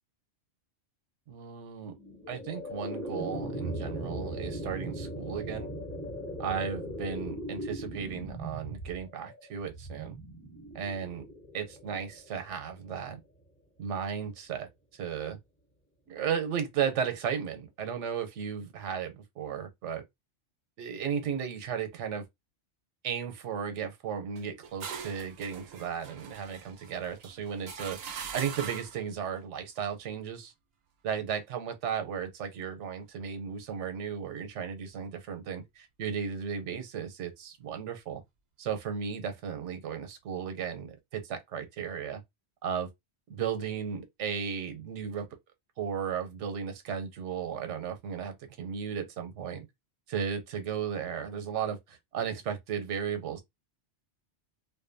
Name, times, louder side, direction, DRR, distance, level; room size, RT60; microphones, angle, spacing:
voice 1, 1.3-2.0 2.3-5.7 6.4-10.2 10.7-11.2 11.5-13.2 13.8-15.4 16.1-20.0 20.8-22.2 23.0-28.0 28.3-30.5 31.0-38.2 38.6-42.2 42.6-42.9 43.3-45.3 45.8-49.7 50.1-53.4, right 7 dB, 90° right, 1.0 m, -35 dB
sound 1, 1.9-13.0, right 1 dB, 15° left, 0.8 m, -39 dB
sound 2, 24.4-29.1, right 7 dB, 65° right, 0.7 m, -42 dB
2.5 x 2.2 x 2.5 m
omnidirectional pair, 1.2 m